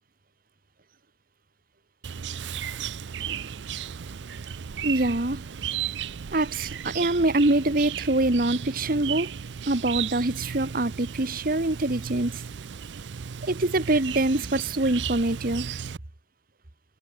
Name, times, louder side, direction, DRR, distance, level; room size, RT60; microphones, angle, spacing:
Chirp tweet, 2.0-16.0, right 8 dB, 70° right, 0.5 m, -35 dB
voice 1, 4.8-5.4 6.3-9.3 9.7-12.4 13.4-15.8, right 2 dB, 50° right, 1.5 m, -24 dB
head